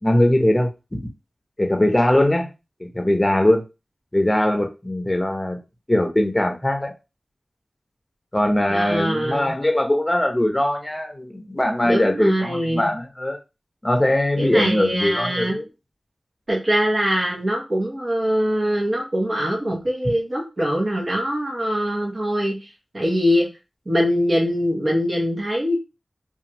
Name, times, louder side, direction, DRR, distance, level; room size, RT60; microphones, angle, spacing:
voice 1, 0.0-1.1 1.6-2.5 2.8-3.6 4.1-5.6 5.9-6.9 8.3-13.4 13.8-15.6, left 1 dB, 20° left, 3 dB, 0.7 m, -20 dB
voice 2, 8.7-9.5 11.8-12.9 14.4-15.6 16.5-22.7 22.9-23.5 23.9-25.8, equal, 50° right, -3 dB, 1.0 m, -22 dB
2.8 x 2.4 x 2.9 m, 0.28 s
cardioid pair, 45°, 0 cm